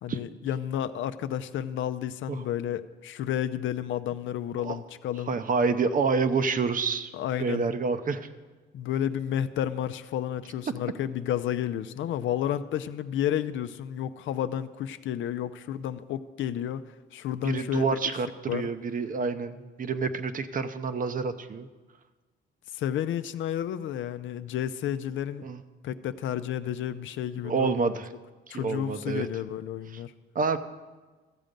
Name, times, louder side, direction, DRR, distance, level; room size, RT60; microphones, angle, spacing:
voice 1, 0.0-5.3 7.1-7.6 8.7-16.8 17.1-18.0 18.5-18.7 22.7-25.5 25.8-27.8 28.5-30.1, left 10 dB, 75° left, 11 dB, 0.5 m, -31 dB
voice 2, 5.3-7.1 7.4-8.3 17.4-21.7 25.4-25.6 27.4-28.1 28.5-29.3 29.9-30.0 30.3-30.6, right 4 dB, 45° right, 10 dB, 0.7 m, -28 dB
14.0 x 7.6 x 5.2 m, 1.3 s
cardioid pair, 90°, 20 cm